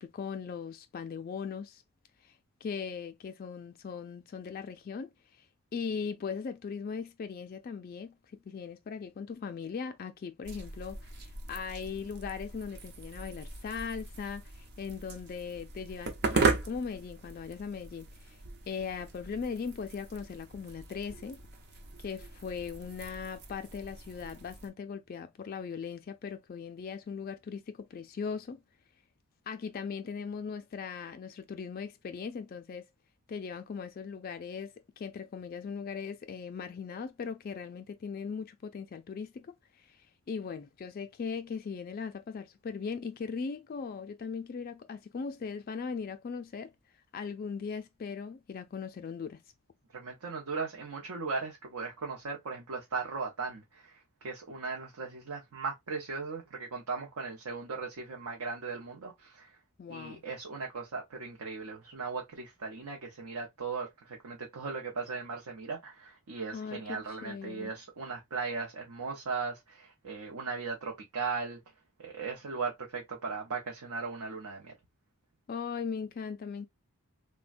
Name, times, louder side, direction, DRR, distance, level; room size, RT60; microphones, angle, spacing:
voice 1, 0.0-1.8 2.2-2.3 2.6-5.1 5.7-8.2 8.5-18.4 18.7-21.4 22.0-28.6 29.5-32.8 33.3-39.5 39.9-40.0 40.3-46.7 47.1-49.4 59.8-60.2 66.5-67.7 75.5-76.7, left 6 dB, 40° left, 0.3 m, -39 dB
sound 1, 10.4-24.7, right 3 dB, 45° right, 0.5 m, -37 dB
voice 2, 49.9-59.6 59.9-71.6 72.0-74.7, right 4 dB, 85° right, 0.7 m, -38 dB
3.2 x 2.2 x 2.4 m
head